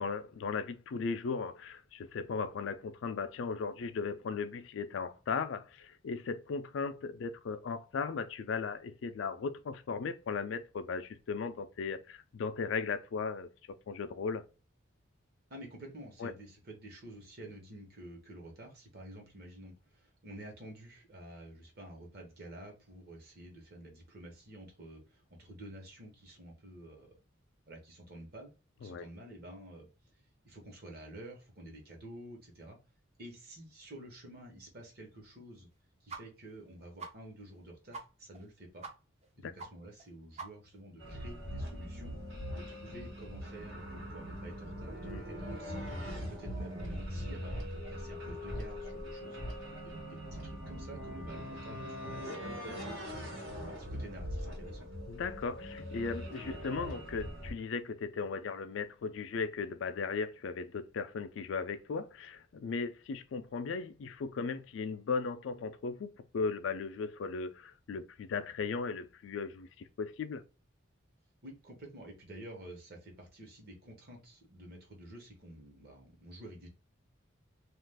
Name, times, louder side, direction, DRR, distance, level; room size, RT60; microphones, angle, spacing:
voice 1, 0.0-14.4 16.2-16.3 28.8-29.1 39.4-39.5 45.0-45.2 55.1-70.4, left 5 dB, 70° left, 0.4 m, -37 dB
voice 2, 15.5-27.2 27.7-28.5 28.8-29.9 30.4-32.8 33.2-35.7 36.0-38.9 39.4-42.1 42.5-53.2 53.7-54.9 71.4-76.7, right 1 dB, 50° right, 1.0 m, -50 dB
sound 1, 36.1-36.2 36.5-36.6 37.0-37.1 37.5-37.6 37.9-38.0 38.3-38.5 38.8-38.9 39.2-39.3 39.6-39.7 40.0-40.1 40.4-40.8, right 4 dB, 35° right, 0.5 m, -43 dB
sound 2, 41.0-57.5, equal, 80° right, 1.2 m, -41 dB
2.4 x 2.3 x 3.3 m
head